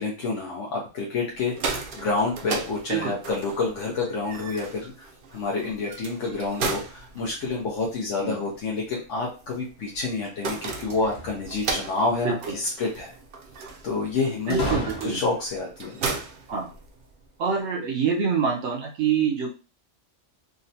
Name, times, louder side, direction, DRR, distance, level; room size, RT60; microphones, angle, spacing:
voice 1, 0.0-13.1 13.8-16.2, left 3 dB, 90° left, -2 dB, 1.1 m, -28 dB
sound 1, 1.3-17.3, right 4 dB, 55° right, 0.6 m, -36 dB
sound 2, 11.0-12.0 14.5-15.6, equal, 60° left, 1.2 m, -33 dB
voice 2, 14.5-15.2 16.5-16.7 17.4-19.5, right 6 dB, 75° right, -1 dB, 0.9 m, -26 dB
3.7 x 2.1 x 2.6 m, 0.34 s
omnidirectional pair, 1.2 m